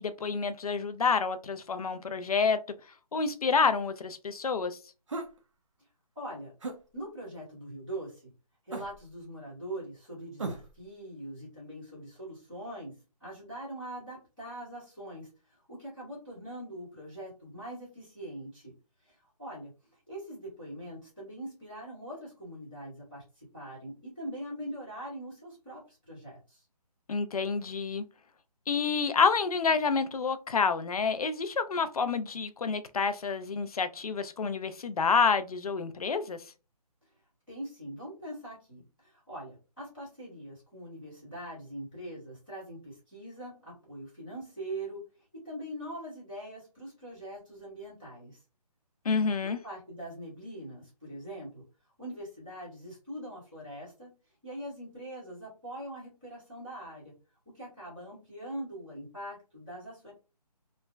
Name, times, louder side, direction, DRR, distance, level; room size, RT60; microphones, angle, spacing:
voice 1, 0.0-2.6 3.1-4.8 27.1-28.0 28.7-36.4 49.1-49.6, left 5 dB, 65° left, 0.4 m, -28 dB
sound 1, 5.1-5.4 6.6-6.8 8.7-9.1 10.4-10.8, right 3 dB, 50° right, 0.6 m, -37 dB
voice 2, 6.1-6.5 6.9-8.2 8.6-12.9 13.2-18.7 19.0-26.6 37.5-48.4 49.4-51.6 52.0-54.1 54.4-57.1 57.4-60.1, right 1 dB, ahead, 0.6 m, -42 dB
3.2 x 2.0 x 2.2 m
hypercardioid pair, 180°, 21 cm